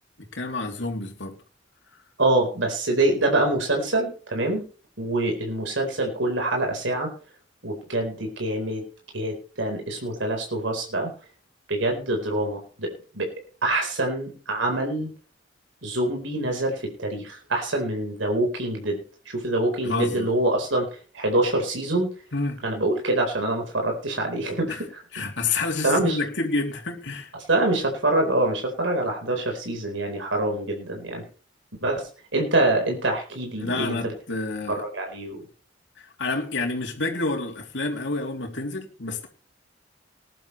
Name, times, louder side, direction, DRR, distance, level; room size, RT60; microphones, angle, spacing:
voice 1, 0.2-1.4 19.8-20.3 22.3-22.6 24.7-24.8 25.1-27.3 33.6-34.8 36.0-39.3, left 3 dB, 70° left, 3.1 m, -29 dB
voice 2, 2.2-4.7 5.0-7.1 7.6-8.8 9.1-11.1 11.7-13.3 13.6-15.1 15.8-19.0 19.3-22.1 22.6-25.0 25.8-26.2 27.5-31.2 31.8-34.1 34.7-35.4, right 2 dB, 90° right, 4.3 m, -25 dB
20.0 x 11.0 x 3.3 m
head